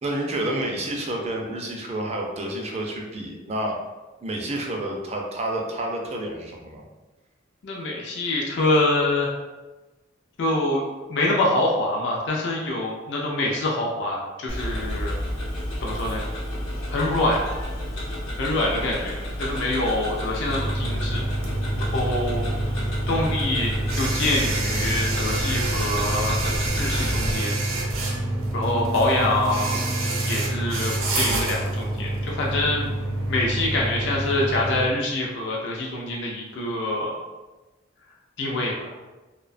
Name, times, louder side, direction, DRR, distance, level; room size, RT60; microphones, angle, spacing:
voice 1, 0.0-3.8 4.2-6.8, right 1 dB, 30° right, 0 dB, 0.3 m, -29 dB
voice 2, 7.6-9.4 10.4-15.2 15.8-16.2 16.9-17.4 18.4-21.2 21.8-22.4 23.1-26.4 26.8-27.6 28.5-29.8 30.2-32.9 33.3-37.2 38.4-38.9, left 2 dB, 60° left, -2 dB, 0.4 m, -25 dB
Tick-tock, 14.5-27.4, equal, 85° left, 0.8 m, -31 dB
sound 1, 20.4-34.9, right 2 dB, 85° right, 0.6 m, -27 dB
2.6 x 2.1 x 2.4 m, 1.1 s
head